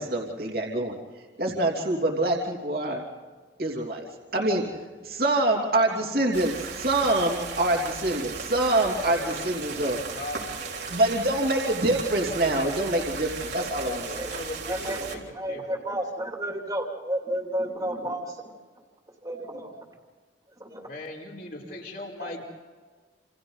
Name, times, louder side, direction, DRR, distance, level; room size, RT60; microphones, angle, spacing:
voice 1, 0.0-3.1 3.6-10.0 10.9-14.3, right 1 dB, 55° right, 0 dB, 3.1 m, -26 dB
sound 1, 6.3-15.2, right 5 dB, 70° right, 3.6 m, -36 dB
voice 2, 9.9-11.0 12.4-12.5 12.8-12.9 13.5-15.2 15.5-15.6 20.8-22.4, left 2 dB, 50° left, 0 dB, 4.9 m, -39 dB
voice 3, 14.6-18.5 19.2-19.7 20.6-20.9 22.2-22.3, right 1 dB, 20° right, 1 dB, 3.0 m, -32 dB
28.5 x 28.5 x 4.1 m, 1.4 s
head